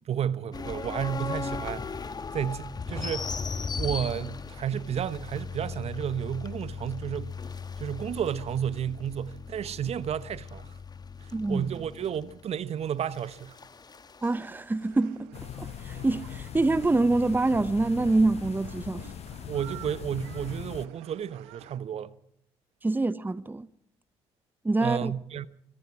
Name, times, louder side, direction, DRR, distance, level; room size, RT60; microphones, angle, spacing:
voice 1, 0.0-2.0 2.3-3.3 3.7-7.4 7.8-10.7 11.2-13.6 19.5-22.2 24.8-25.5, right 9 dB, 45° right, 1.1 m, -32 dB
sound 1, 0.5-14.4, left 5 dB, 30° left, 1.5 m, -38 dB
voice 2, 11.3-11.7 14.2-15.3 15.6-19.1 22.8-23.7 24.6-25.1, right 2 dB, 15° right, 0.9 m, -26 dB
sound 2, 14.8-21.8, right 14 dB, 70° right, 1.5 m, -50 dB
sound 3, 15.3-20.9, left 10 dB, 45° left, 0.9 m, -40 dB
25.5 x 24.0 x 4.9 m
figure-of-eight pair, 50°, 14 cm